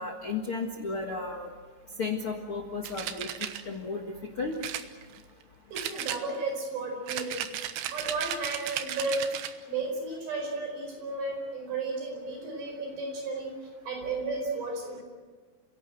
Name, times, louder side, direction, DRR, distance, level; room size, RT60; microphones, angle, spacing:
voice 1, 0.0-1.5 2.0-4.0 4.4-4.5, left 4 dB, 55° left, 3 dB, 1.5 m, -34 dB
sound 1, 2.8-3.6 4.6-5.4 5.8-6.6 7.1-9.6, right 11 dB, 85° right, 3.5 m, -35 dB
voice 2, 5.7-7.5 7.9-9.4 9.7-13.5 13.9-15.0, right 3 dB, 70° right, 2 dB, 6.9 m, -33 dB
30.0 x 17.5 x 7.8 m, 1.4 s
omnidirectional pair, 5.0 m